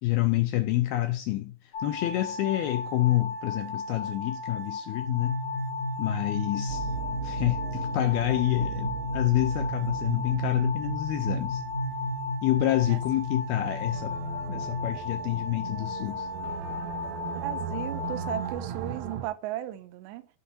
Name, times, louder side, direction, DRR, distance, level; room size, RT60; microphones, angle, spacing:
voice 1, 0.0-5.4 6.0-6.9 7.2-11.6 12.4-14.2 14.5-16.3, left 15 dB, 80° left, 2.3 m, -28 dB
sound 1, 1.7-18.5, left 3 dB, 40° left, 5.2 m, -36 dB
sound 2, 5.0-14.9, left 2 dB, 60° left, 2.5 m, -35 dB
sound 3, 6.7-19.3, right 8 dB, 70° right, 2.6 m, -37 dB
voice 2, 17.4-20.3, right 15 dB, 85° right, 2.9 m, -35 dB
13.5 x 8.0 x 2.7 m
omnidirectional pair, 5.0 m